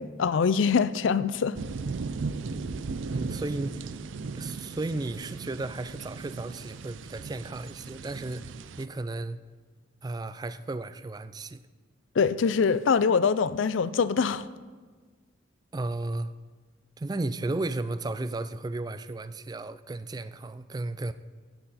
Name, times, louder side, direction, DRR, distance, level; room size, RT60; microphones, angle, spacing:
voice 1, 0.0-1.6 12.2-14.5, left 5 dB, 80° left, 0.4 m, -24 dB
sound 1, 1.5-8.9, right 4 dB, 80° right, 0.5 m, -37 dB
voice 2, 3.0-3.9 4.4-9.4 10.0-11.6 15.7-16.3 17.0-21.1, right 2 dB, 20° right, 0.3 m, -34 dB
16.0 x 7.8 x 4.2 m
head